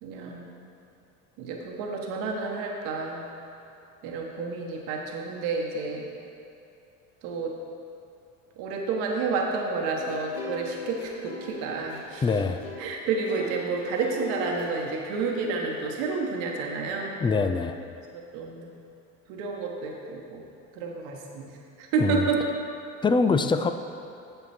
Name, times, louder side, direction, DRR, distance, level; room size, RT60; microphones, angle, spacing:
voice 1, 0.0-0.6 1.4-3.3 4.0-6.1 7.2-7.5 8.6-12.4 12.8-17.1 18.3-18.7 19.3-20.4 20.7-21.5 21.8-22.4, right 4 dB, 70° right, 0 dB, 1.3 m, -30 dB
sound 1, 10.0-15.7, left 2 dB, 65° left, 2.1 m, -40 dB
voice 2, 12.2-12.6 17.2-17.8 22.0-22.3 23.0-23.7, left 4 dB, 15° left, 8 dB, 0.4 m, -23 dB
9.3 x 7.1 x 4.3 m, 2.7 s
hypercardioid pair, 85°, 41 cm